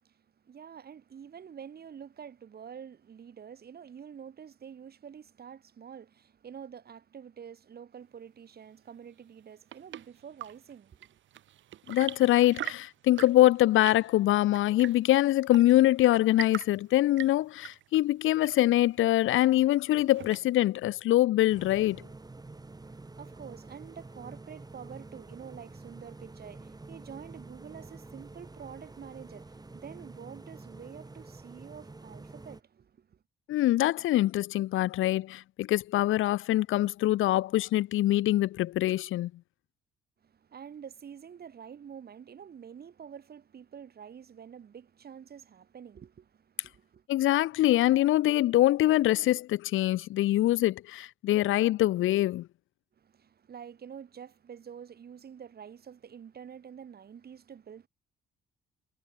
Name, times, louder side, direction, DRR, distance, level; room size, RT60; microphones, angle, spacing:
voice 1, 0.0-11.2 22.8-33.2 40.2-47.1 53.0-57.9, right 7 dB, 50° right, 4.8 m, -47 dB
Chirp tweet / Engine / Tap, 9.3-20.8, right 12 dB, 70° right, 1.7 m, -44 dB
voice 2, 11.9-22.0 33.5-39.3 47.1-52.5, left 15 dB, 85° left, 1.6 m, -24 dB
sound 1, 21.5-32.6, right 3 dB, 20° right, 6.4 m, -48 dB
cardioid pair, 90°, 20 cm